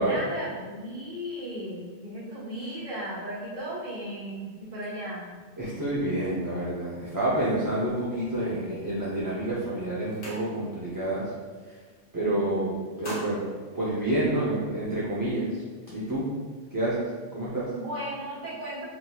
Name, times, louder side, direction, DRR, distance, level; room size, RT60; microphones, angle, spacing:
voice 1, 0.0-5.3 12.2-12.8 17.7-18.9, equal, 40° right, -8 dB, 1.3 m, -35 dB
voice 2, 5.6-11.3 12.1-13.4 13.7-15.5 15.9-16.3 16.7-17.0 17.3-17.7, right 1 dB, 25° right, -9 dB, 0.4 m, -28 dB
sound 1, 10.0-10.9 11.3-11.5 11.8-12.4 12.7-14.6, equal, 30° left, 0.7 m, -43 dB
3.8 x 2.6 x 2.3 m, 1.5 s
omnidirectional pair, 1.1 m